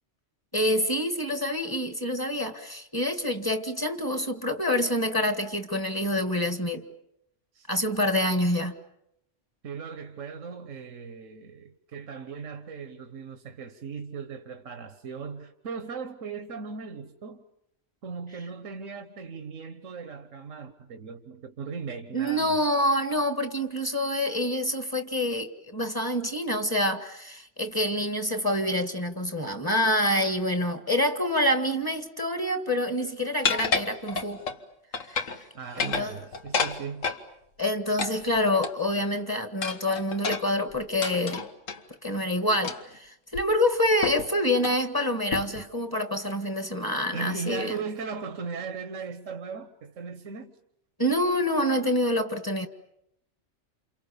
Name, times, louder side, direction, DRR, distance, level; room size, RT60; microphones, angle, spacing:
voice 1, 0.5-6.9 7.7-8.7 22.1-34.4 35.1-35.2 35.8-36.2 37.6-41.5 42.0-47.8 51.0-52.7, left 1 dB, 15° left, 1.8 m, -27 dB
voice 2, 9.6-17.4 18.0-22.6 35.5-37.1 47.1-50.6, right 5 dB, 85° right, 1.6 m, -38 dB
sound 1, 33.4-34.6 34.9-35.4 35.7-37.2 38.0-39.0 39.6-41.8 42.6-43.0 43.3-43.4 44.0-44.3 44.6-44.8 45.3-45.7, left 5 dB, 85° left, 1.8 m, -30 dB
29.0 x 28.5 x 7.0 m
omnidirectional pair, 1.3 m